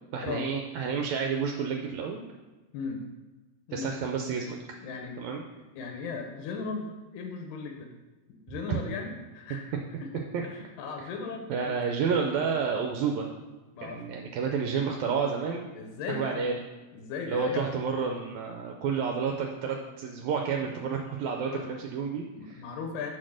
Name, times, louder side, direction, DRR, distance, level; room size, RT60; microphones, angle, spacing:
voice 1, 0.1-2.3 3.7-4.6 5.2-5.4 8.7-8.8 10.3-10.4 11.5-13.3 13.8-15.7 16.2-16.6 17.3-22.7, right 6 dB, 80° right, 2 dB, 1.8 m, -30 dB
voice 2, 3.7-4.0 4.8-5.1 5.6-7.9 8.3-9.7 10.0-10.1 10.4-11.8 13.7-14.1 15.8-16.5 16.9-17.7 20.6-21.1 21.5-21.7 22.3-23.1, left 5 dB, 80° left, 3 dB, 2.2 m, -37 dB
6.0 x 4.3 x 6.2 m, 1.2 s
omnidirectional pair, 3.5 m